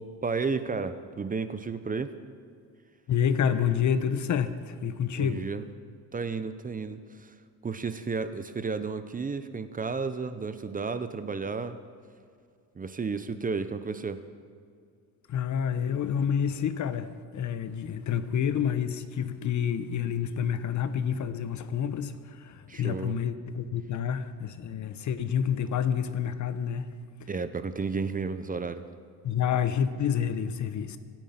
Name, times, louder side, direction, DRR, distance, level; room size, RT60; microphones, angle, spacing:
voice 1, 0.0-2.1 5.2-5.6 6.1-7.3 7.6-11.8 12.8-14.2 22.7-23.2 27.3-28.8, right 4 dB, 25° right, 11 dB, 0.8 m, -32 dB
voice 2, 3.1-5.4 15.3-26.9 27.2-27.3 29.2-31.0, left 8 dB, 55° left, 12 dB, 1.1 m, -28 dB
26.0 x 9.2 x 5.9 m, 2.2 s
cardioid pair, 115°, 35 cm